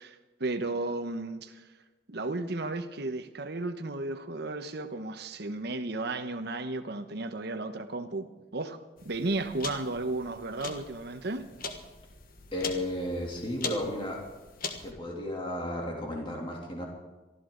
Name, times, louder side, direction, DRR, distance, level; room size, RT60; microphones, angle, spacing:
voice 1, 0.0-1.6 2.1-11.5, right 2 dB, 65° right, 1.1 m, -34 dB
sound 1, 9.0-14.9, left 4 dB, 55° left, 1.5 m, -41 dB
voice 2, 12.5-14.2 14.6-16.8, left 1 dB, 30° left, 3.0 m, -34 dB
23.5 x 14.5 x 3.9 m
head